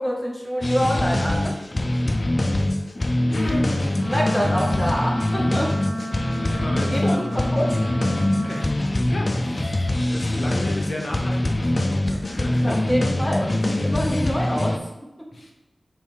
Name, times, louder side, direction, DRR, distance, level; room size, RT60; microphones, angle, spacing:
voice 1, 0.0-1.6 3.1-3.7 4.1-5.8 6.8-7.8 12.1-15.3, equal, ahead, -3 dB, 0.7 m, -27 dB
sound 1, 0.6-14.8, left 1 dB, 35° left, 0.4 m, -23 dB
voice 2, 3.3-4.7 6.2-7.5 8.3-13.4 15.3-15.5, left 1 dB, 50° left, -1 dB, 0.9 m, -35 dB
Wind instrument woodwind instrument, 3.9-8.7, equal, 30° right, 1.5 m, -33 dB
3.3 x 3.1 x 4.6 m, 1.0 s
wide cardioid pair, 90°, 0 cm